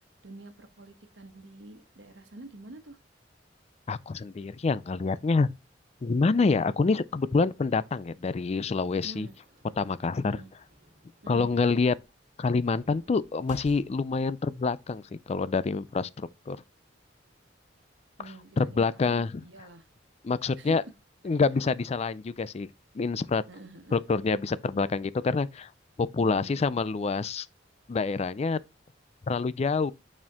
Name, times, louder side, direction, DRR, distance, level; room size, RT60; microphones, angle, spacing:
voice 1, 0.2-3.0 9.0-9.4 10.2-10.5 11.2-11.7 18.2-19.9 20.6-20.7 23.5-24.0 26.2-26.7, right 1 dB, 75° right, 1.2 m, -47 dB
voice 2, 3.9-5.5 6.0-9.3 9.8-10.4 11.3-11.9 12.4-16.6 18.6-19.4 20.2-20.8 21.2-22.7 22.9-23.4 23.9-25.7 26.0-27.5 27.9-28.6 29.3-29.9, left 4 dB, 35° left, 0.4 m, -27 dB
sound 1, 8.9-14.3, right 1 dB, 45° right, 1.8 m, -55 dB
8.7 x 4.4 x 3.6 m
head